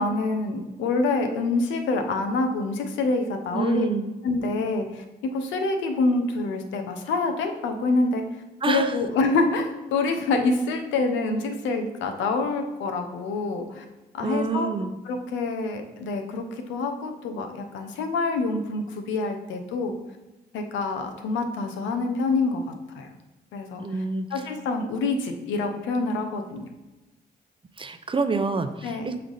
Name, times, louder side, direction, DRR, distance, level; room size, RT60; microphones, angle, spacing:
voice 1, 0.0-3.9 4.2-8.2 8.7-13.8 14.1-14.7 15.0-20.0 20.5-22.6 22.9-23.1 23.5-23.8 24.3-26.7 28.8-29.1, left 3 dB, 90° left, 6 dB, 0.7 m, -26 dB
voice 2, 3.5-4.1 8.6-9.0 14.2-15.0 23.8-24.3 27.8-29.2, right 4 dB, 30° right, 9 dB, 0.6 m, -27 dB
7.2 x 3.3 x 3.9 m, 1.1 s
supercardioid pair, 60°, 19 cm